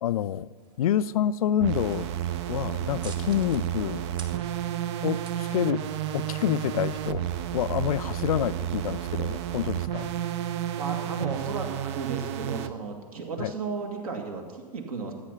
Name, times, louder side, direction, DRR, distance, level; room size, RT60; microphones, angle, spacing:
voice 1, 0.0-2.1 2.5-4.1 5.0-5.8 6.1-7.2 7.5-10.1 13.4-13.5, left 10 dB, 60° left, 17 dB, 0.4 m, -28 dB
sound 1, 0.6-6.6, right 4 dB, 20° right, 1.1 m, -51 dB
sound 2, 1.6-12.7, right 11 dB, 45° right, 0.6 m, -31 dB
sound 3, 6.9-10.2 11.3-11.6, left 2 dB, 80° right, 2.7 m, -51 dB
voice 2, 10.8-15.1, right 4 dB, 60° right, 3 dB, 2.0 m, -34 dB
14.0 x 8.5 x 5.7 m, 1.5 s
figure-of-eight pair, 95°, 21 cm